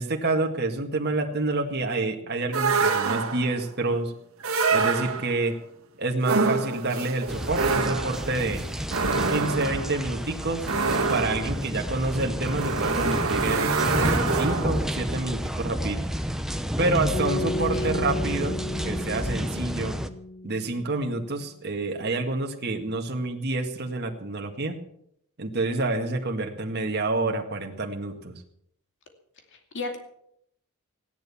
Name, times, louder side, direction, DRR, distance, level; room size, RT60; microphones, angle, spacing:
voice 1, 0.0-4.1 4.7-5.6 6.0-8.6 9.3-10.7 11.1-13.7 14.3-16.0 16.8-20.0 20.4-24.8 25.4-28.3, right 2 dB, 50° right, 3 dB, 1.9 m, -28 dB
sound 1, 2.5-3.6 4.4-5.5 6.2-14.9, right 4 dB, 70° right, 2.1 m, -26 dB
sound 2, 7.3-20.1, equal, ahead, 0.8 m, -30 dB
sound 3, 17.1-21.4, left 1 dB, 30° left, 1.3 m, -34 dB
voice 2, 17.6-18.0 29.5-30.0, left 3 dB, 60° left, 5 dB, 2.5 m, -36 dB
16.0 x 10.5 x 7.1 m, 0.72 s
head